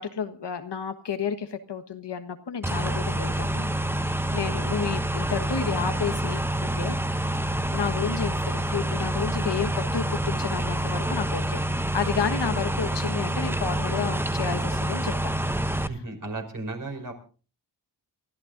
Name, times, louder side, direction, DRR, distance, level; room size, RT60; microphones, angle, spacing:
voice 1, 0.0-3.7 4.0-7.0 7.7-15.1 15.8-15.9, left 7 dB, 70° left, 8 dB, 1.5 m, -31 dB
sound 1, 2.6-15.9, right 1 dB, 5° right, 0.7 m, -27 dB
voice 2, 15.9-17.1, right 2 dB, 45° right, 3 dB, 5.1 m, -35 dB
28.5 x 13.5 x 2.6 m, 0.39 s
wide cardioid pair, 95°, 43 cm